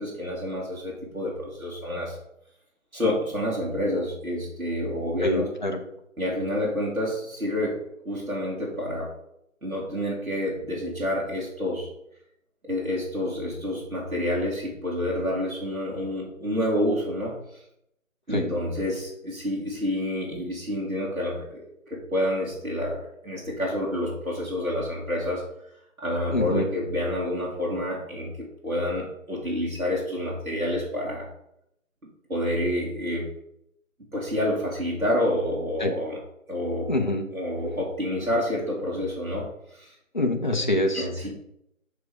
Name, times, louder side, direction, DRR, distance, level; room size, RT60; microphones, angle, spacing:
voice 1, 0.0-2.2 2.9-5.5 6.2-7.8 8.0-9.1 9.6-11.9 12.6-17.6 18.3-25.4 26.0-31.3 32.3-33.3 34.1-36.2 36.5-36.9 37.3-39.9 40.9-41.3, left 1 dB, 75° right, -4 dB, 2.6 m, -28 dB
voice 2, 5.2-5.8 18.3-18.5 26.3-26.7 35.8-35.9 36.9-37.2 40.1-41.1, left 1 dB, 35° left, 3 dB, 0.7 m, -25 dB
6.8 x 4.8 x 4.9 m, 0.78 s
figure-of-eight pair, 160°, 42 cm